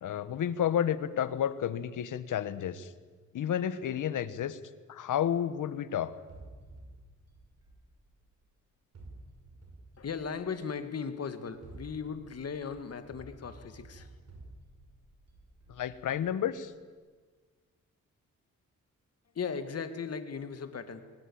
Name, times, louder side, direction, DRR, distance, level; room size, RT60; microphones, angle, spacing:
voice 1, 0.0-2.9 3.3-4.6 4.9-6.1 15.7-16.7, left 9 dB, 85° left, 14 dB, 1.3 m, -31 dB
sound 1, 6.3-8.4 8.9-10.8 11.4-16.5, right 2 dB, 55° right, 5.9 m, -52 dB
voice 2, 10.0-14.1 19.3-21.0, left 6 dB, 55° left, 9 dB, 2.1 m, -37 dB
21.5 x 19.5 x 8.8 m, 1.4 s
cardioid pair, 105°, 30 cm